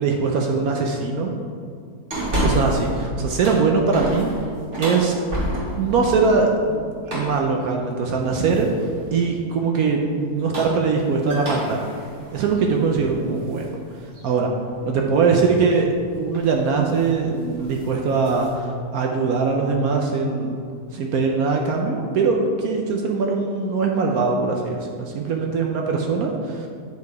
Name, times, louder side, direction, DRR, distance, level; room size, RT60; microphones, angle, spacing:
voice 1, 0.0-1.3 2.4-4.3 4.8-5.5 5.7-8.7 9.1-11.8 12.3-14.5 14.9-15.9 16.2-20.6 20.9-26.7, right 4 dB, 70° right, 1 dB, 1.1 m, -21 dB
sound 1, 2.1-2.9 3.3-6.0 7.1-7.5 8.5-9.0 10.2-13.7 14.1-14.2 15.8-16.0 16.3-16.6 16.9-17.2 17.5-18.5, equal, 45° right, 2.2 m, -29 dB
9.3 x 4.8 x 4.7 m, 2.2 s
omnidirectional pair, 1.7 m